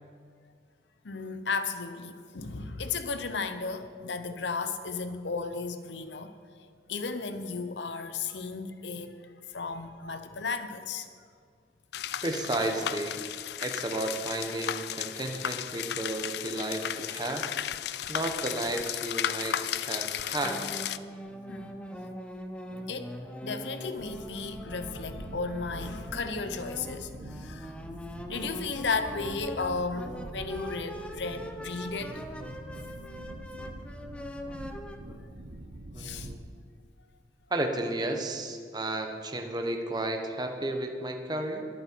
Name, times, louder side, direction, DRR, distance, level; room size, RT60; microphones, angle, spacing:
voice 1, 1.0-6.3 6.9-9.2 9.5-11.1 21.5-21.8 22.8-27.8 28.3-32.2 35.1-35.3 36.0-36.3, left 4 dB, 80° left, 9 dB, 0.9 m, -34 dB
sound 1, 11.9-21.0, left 10 dB, 60° left, 0.4 m, -34 dB
voice 2, 12.2-13.2 13.6-17.5 18.1-20.7 35.9-36.4 37.5-41.7, right 2 dB, 25° right, 4 dB, 1.1 m, -33 dB
sound 2, 20.4-35.0, equal, 5° left, 0.7 m, -42 dB
sound 3, 24.0-36.4, right 1 dB, 60° right, 1.0 m, -44 dB
22.0 x 8.5 x 4.6 m, 2.1 s
head